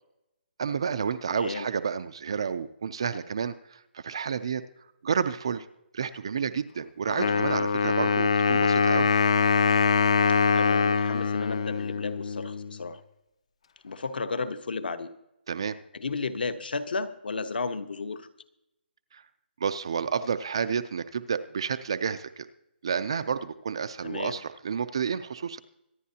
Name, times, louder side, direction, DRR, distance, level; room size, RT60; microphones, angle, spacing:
voice 1, 0.6-4.6 5.0-5.7 5.9-9.1 15.5-15.8 19.1-19.2 19.6-22.5 22.8-25.6, right 6 dB, 30° right, 11 dB, 0.4 m, -30 dB
voice 2, 1.3-1.7 7.0-7.4 10.5-13.0 13.8-15.1 15.9-18.3 24.0-24.4, left 4 dB, 60° left, 9 dB, 1.1 m, -33 dB
Wind instrument woodwind instrument, 7.2-12.8, left 5 dB, 35° left, 0.5 m, -23 dB
25.0 x 9.3 x 2.8 m, 0.86 s
hypercardioid pair, 180°, 6 cm